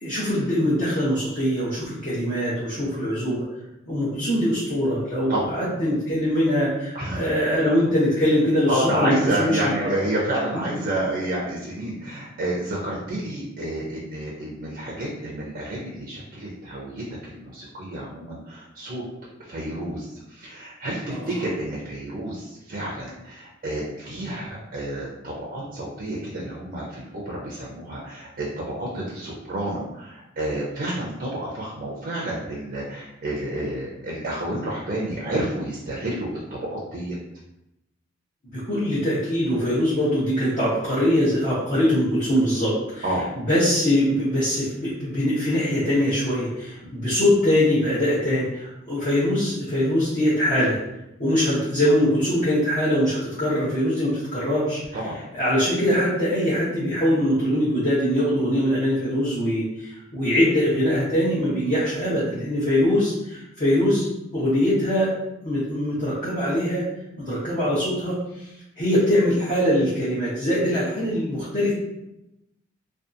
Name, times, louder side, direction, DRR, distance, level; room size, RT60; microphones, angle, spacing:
voice 1, 0.0-3.4 3.9-9.9 21.1-21.3 38.5-50.8 51.2-64.1 64.3-65.1 65.4-66.9 67.2-68.5 68.8-71.7, equal, 40° left, -9 dB, 0.8 m, -22 dB
voice 2, 6.9-7.3 8.7-19.0 19.5-20.1 20.3-37.2 43.0-43.3 46.8-46.9 54.9-55.2, right 1 dB, 45° right, -4 dB, 0.5 m, -29 dB
2.6 x 2.3 x 2.5 m, 0.90 s
head